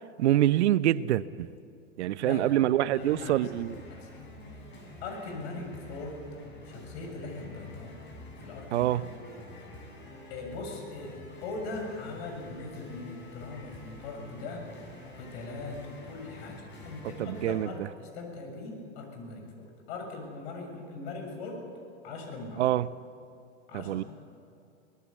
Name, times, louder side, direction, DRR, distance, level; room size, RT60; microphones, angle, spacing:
voice 1, 0.2-1.5 2.0-3.8 8.7-9.0 17.2-17.7 22.6-22.9 23.7-24.0, right 13 dB, 65° right, 0.8 m, -25 dB
voice 2, 2.2-3.4 3.9-4.1 4.5-4.7 5.0-6.2 6.6-8.0 8.4-8.9 9.2-9.4 10.3-14.7 15.2-21.6 22.0-22.7 23.7-24.1, left 3 dB, 60° left, 6.8 m, -40 dB
sound 1, 3.0-17.7, left 2 dB, 30° left, 7.1 m, -47 dB
23.5 x 19.0 x 8.4 m
hypercardioid pair, 110°, 36 cm